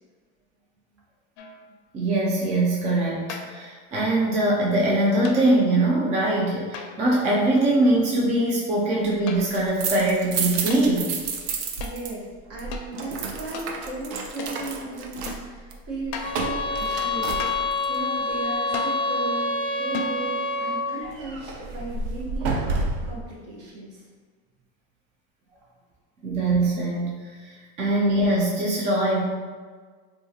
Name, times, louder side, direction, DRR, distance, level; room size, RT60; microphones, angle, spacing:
sound 1, 1.4-1.8 3.3-3.7 5.2-5.6 6.7-7.2 9.0-9.7 10.7-10.9 11.8-12.0 12.7-12.9 13.5-13.7 14.4-14.6 15.3-15.5 16.1-16.4 17.4-17.8 18.7-19.1 19.9-20.2, left 5 dB, 65° left, 0.5 m, -36 dB
voice 1, 1.9-11.1 26.2-27.5 27.8-29.2, right 1 dB, 20° right, -4 dB, 0.4 m, -22 dB
sound 2, 9.5-12.1 12.4-18.0 21.0-23.2, right 4 dB, 80° right, 0.6 m, -31 dB
voice 2, 11.8-22.5 23.0-24.1, right 2 dB, 45° right, -4 dB, 1.1 m, -36 dB
sound 3, 16.2-20.9, left 2 dB, 5° left, 0.7 m, -27 dB
3.6 x 2.4 x 2.7 m, 1.5 s
supercardioid pair, 140°, 34 cm